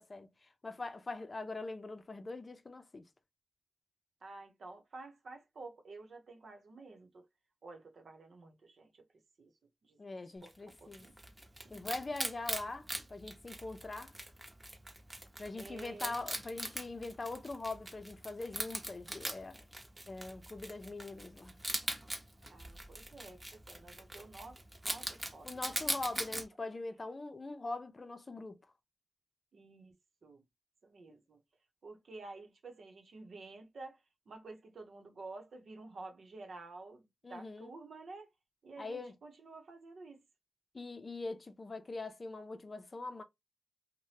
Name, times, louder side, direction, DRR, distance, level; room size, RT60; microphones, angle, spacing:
voice 1, 0.0-3.1 10.0-11.1 11.7-14.1 15.4-19.6 20.1-21.6 25.4-28.6 37.2-37.7 38.8-39.2 40.7-43.2, left 3 dB, 45° left, 0.5 m, -42 dB
voice 2, 4.2-7.3 7.6-9.1 9.4-9.5 9.8-10.0 10.4-11.1 11.6-11.8 15.6-16.2 22.5-26.4 29.5-30.0 30.2-30.4 30.8-31.4 31.8-38.3 38.6-40.2, right 3 dB, 90° right, 0.8 m, -51 dB
Wild animals, 10.5-26.4, right 1 dB, 20° right, 0.8 m, -42 dB
2.7 x 2.1 x 3.2 m
wide cardioid pair, 85°, 0 cm